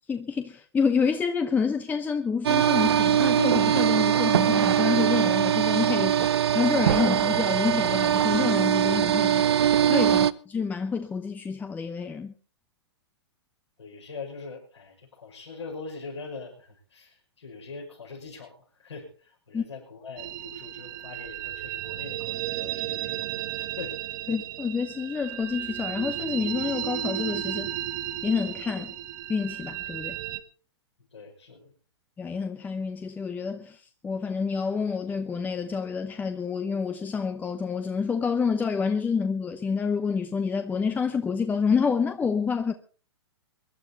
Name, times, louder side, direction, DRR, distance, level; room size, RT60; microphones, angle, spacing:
voice 1, 0.1-9.5 9.9-12.3 19.5-19.6 24.3-27.7 28.2-28.9 29.3-30.2 32.2-42.7, left 5 dB, 10° left, 0.8 m, -28 dB
sound 1, 2.4-10.3, right 9 dB, 65° right, 0.7 m, -22 dB
voice 2, 13.8-24.4 31.1-31.7, left 4 dB, 80° left, 6.0 m, -42 dB
sound 2, 20.2-30.4, right 12 dB, 45° right, 1.3 m, -34 dB
23.0 x 12.0 x 4.0 m
figure-of-eight pair, 115°, 14 cm